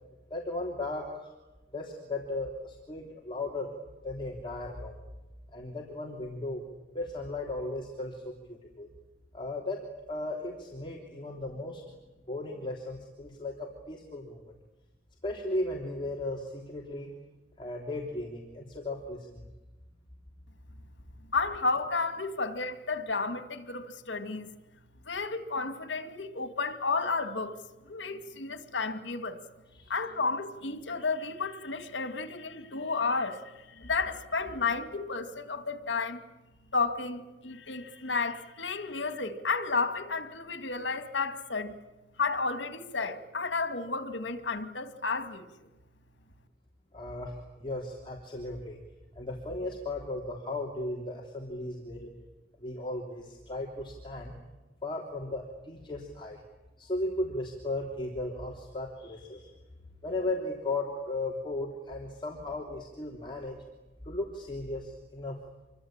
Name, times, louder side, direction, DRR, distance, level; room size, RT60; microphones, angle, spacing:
voice 1, 0.3-1.3 1.7-3.7 4.0-5.0 5.5-6.6 6.9-8.9 9.3-11.8 12.3-14.5 15.2-17.1 17.6-19.5 29.7-29.9 46.9-48.8 49.1-52.1 52.6-54.4 54.8-56.4 56.8-59.5 60.0-63.6 64.0-65.4, left 2 dB, 25° left, 3.2 m, -36 dB
voice 2, 21.3-24.5 25.0-27.6 27.8-29.4 29.9-36.2 36.7-41.8 42.2-45.7, left 4 dB, 85° left, 2.2 m, -32 dB
26.5 x 24.0 x 8.9 m
head